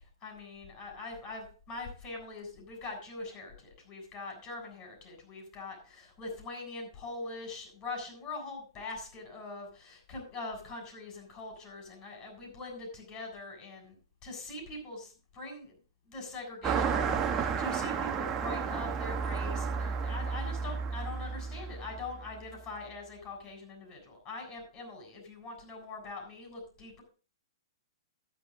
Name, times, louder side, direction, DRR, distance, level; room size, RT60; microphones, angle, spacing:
voice 1, 0.0-14.0 14.2-15.7 16.1-27.0, left 3 dB, 30° left, 2 dB, 7.2 m, -43 dB
Car passing by, 16.6-22.5, right 6 dB, 20° right, 1.5 m, -32 dB
13.0 x 10.5 x 3.8 m, 0.38 s
hypercardioid pair, 130°, 2 cm